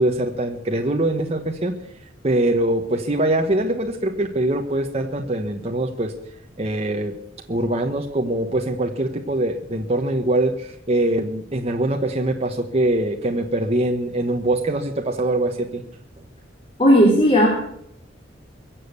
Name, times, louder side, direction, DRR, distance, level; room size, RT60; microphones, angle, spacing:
voice 1, 0.0-1.7 2.2-6.1 6.6-7.1 7.5-15.8, right 1 dB, 35° right, 2 dB, 1.3 m, -23 dB
voice 2, 16.8-17.5, equal, 30° left, 0 dB, 3.4 m, -14 dB
23.0 x 7.6 x 8.3 m, 0.70 s
head